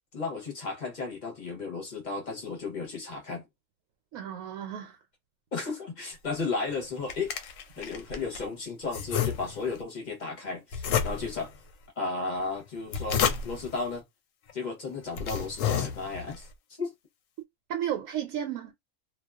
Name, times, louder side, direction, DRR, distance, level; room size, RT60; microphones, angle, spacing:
voice 1, 0.1-3.5 5.5-7.3 7.8-11.5 12.0-14.0 14.5-16.5 16.8-16.9, left 4 dB, 40° left, 0.8 m, -34 dB
voice 2, 4.1-5.0 17.7-18.7, right 10 dB, 75° right, 1.0 m, -33 dB
sound 1, 6.7-8.5 8.9-9.8 10.7-11.5 12.7-13.7 14.5-14.6 15.0-16.4, left 8 dB, 70° left, 0.9 m, -31 dB
2.3 x 2.3 x 2.3 m
omnidirectional pair, 1.5 m